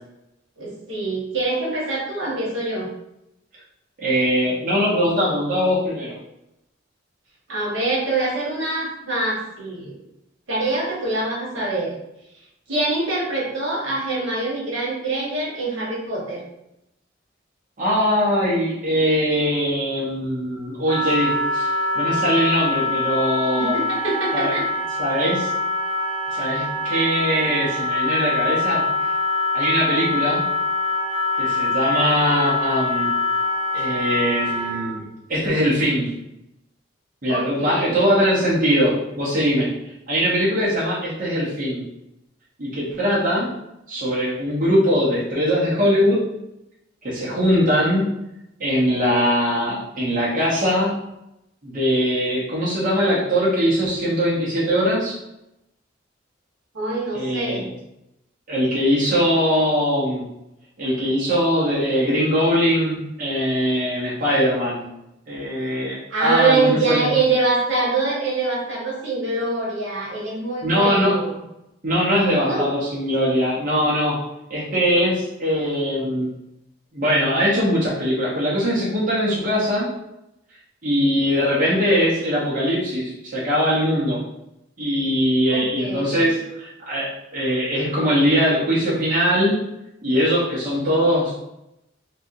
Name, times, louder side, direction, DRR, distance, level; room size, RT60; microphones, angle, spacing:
voice 1, 0.6-2.9 7.5-10.0 10.5-11.9 12.7-16.4 23.6-24.6 37.3-38.0 56.7-57.6 66.1-71.4 72.4-72.7 85.5-86.3, right 3 dB, 80° right, -4 dB, 1.1 m, -24 dB
voice 2, 4.0-6.2 17.8-23.8 24.3-24.5 25.0-25.5 26.3-28.8 29.5-30.4 31.4-33.1 33.7-35.0 35.3-36.1 37.2-39.7 40.1-41.8 42.6-43.5 43.9-46.2 47.0-48.1 48.6-51.0 51.6-55.2 57.1-57.7 58.5-60.3 60.8-64.9 65.3-67.1 70.6-71.2 71.8-74.2 74.5-76.3 76.9-79.9 80.8-84.2 84.8-89.6 90.0-91.4, equal, 45° right, -7 dB, 0.8 m, -21 dB
Wind instrument woodwind instrument, 20.8-34.9, left 2 dB, 25° left, 1.4 m, -24 dB
3.2 x 2.7 x 2.4 m, 0.85 s
head